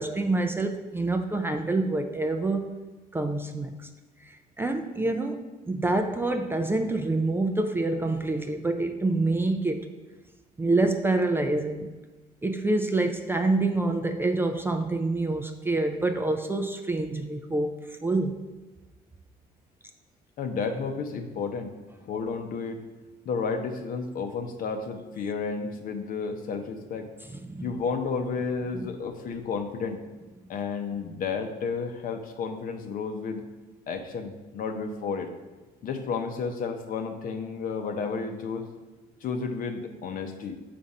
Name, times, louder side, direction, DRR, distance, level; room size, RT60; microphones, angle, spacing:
voice 1, 0.0-2.7 3.1-3.9 4.2-9.9 10.6-11.9 12.4-18.3 27.3-27.7 28.7-28.9, right 2 dB, 15° right, 5 dB, 0.3 m, -27 dB
voice 2, 20.4-21.7 22.0-22.8 23.2-27.1 27.6-30.0 30.5-33.4 33.9-35.3 35.8-38.7 39.2-40.6, left 5 dB, 55° left, 5 dB, 0.7 m, -32 dB
7.0 x 2.5 x 5.3 m, 1.2 s
cardioid pair, 110°, 17 cm